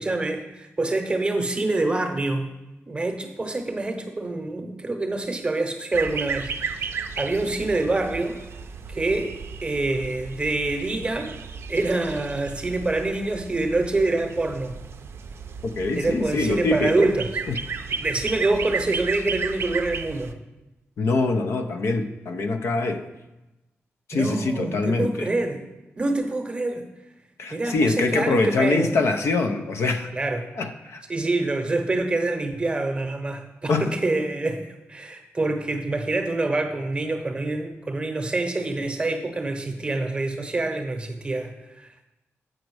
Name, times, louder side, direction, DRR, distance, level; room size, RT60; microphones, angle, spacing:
voice 1, 0.0-2.5 2.9-8.4 8.9-9.3 9.6-11.3 11.7-14.7 16.0-17.3 18.0-20.3 24.1-25.6 26.0-26.9 27.5-29.0 30.1-30.5 31.1-42.0, right 2 dB, 20° right, 5 dB, 0.8 m, -26 dB
sound 1, 5.9-20.3, right 5 dB, 60° right, 0.4 m, -34 dB
voice 2, 15.8-17.1 17.5-17.6 21.0-23.0 24.1-25.3 27.4-30.1 30.6-31.0 33.7-33.9, left 3 dB, 75° left, 7 dB, 0.6 m, -24 dB
7.6 x 5.2 x 4.7 m, 1.0 s
wide cardioid pair, 130°, 5 cm